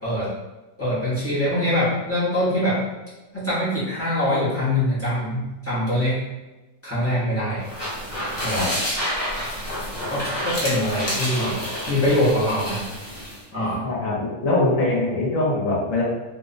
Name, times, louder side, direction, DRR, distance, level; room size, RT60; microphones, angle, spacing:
voice 1, 0.8-2.8 3.3-6.2 6.8-7.6 8.4-8.7 10.1-11.5 11.9-12.8 13.5-13.8, left 1 dB, 20° left, -10 dB, 0.4 m, -23 dB
sound 1, 7.6-13.4, equal, 40° left, 0.8 m, -29 dB
voice 2, 13.8-16.0, left 2 dB, 65° left, -5 dB, 1.1 m, -22 dB
2.6 x 2.0 x 2.5 m, 1.1 s
omnidirectional pair, 1.5 m